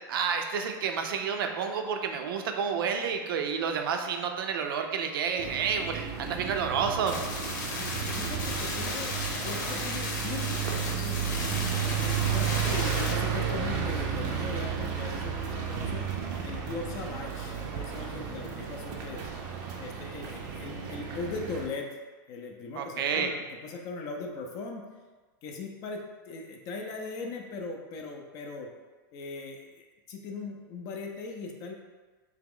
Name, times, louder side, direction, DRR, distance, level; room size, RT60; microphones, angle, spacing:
voice 1, 0.1-7.2 22.8-23.3, right 6 dB, 85° right, 5 dB, 0.5 m, -30 dB
sound 1, 5.4-21.7, right 7 dB, 35° right, 0.4 m, -33 dB
sound 2, 7.1-13.1, left 3 dB, 60° left, 0.8 m, -35 dB
voice 2, 7.7-11.2 11.8-16.1 16.4-19.2 19.8-22.0 22.3-24.8 25.4-28.7 29.1-31.7, left 3 dB, 30° left, 2 dB, 0.4 m, -39 dB
3.5 x 2.9 x 3.6 m, 1.4 s
supercardioid pair, 165°, 11 cm